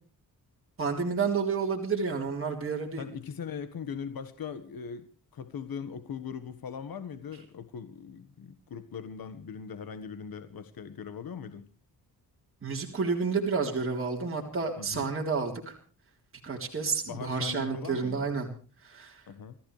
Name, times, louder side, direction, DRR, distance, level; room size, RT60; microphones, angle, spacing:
voice 1, 0.8-3.0 12.6-15.7 16.4-18.5 18.8-19.2, right 5 dB, 35° right, 3.8 m, -30 dB
voice 2, 3.0-11.7 14.8-15.1 17.0-18.3 19.3-19.6, left 7 dB, 65° left, 1.6 m, -40 dB
29.0 x 14.5 x 3.3 m
cardioid pair, 90°, 38 cm